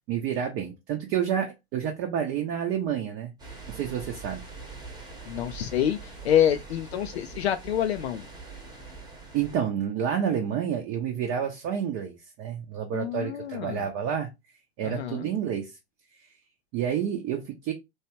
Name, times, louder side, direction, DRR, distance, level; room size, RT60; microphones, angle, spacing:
voice 1, 0.1-3.3 3.7-4.4 9.3-14.3 14.8-15.8 16.7-17.7, right 8 dB, 35° right, 0.7 m, -29 dB
sound 1, 3.4-9.6, right 4 dB, 10° right, 0.9 m, -43 dB
voice 2, 5.3-8.3 12.9-13.9 14.8-15.3, left 10 dB, 70° left, 0.5 m, -27 dB
3.0 x 2.3 x 2.9 m
figure-of-eight pair, 90°, 34 cm